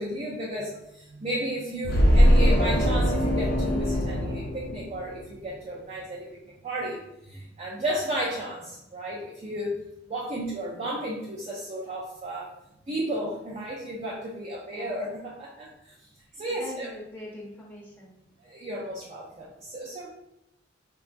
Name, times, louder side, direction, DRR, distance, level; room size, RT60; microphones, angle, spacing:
voice 1, 0.0-7.0 7.3-9.8 10.1-12.5 12.9-16.1 16.4-16.9 18.4-20.1, right 1 dB, 35° right, -4 dB, 0.4 m, -33 dB
sound 1, 1.8-5.3, equal, 55° left, 0.5 m, -21 dB
voice 2, 16.3-18.1, left 1 dB, 10° left, -6 dB, 0.6 m, -42 dB
3.8 x 2.2 x 2.5 m, 0.85 s
head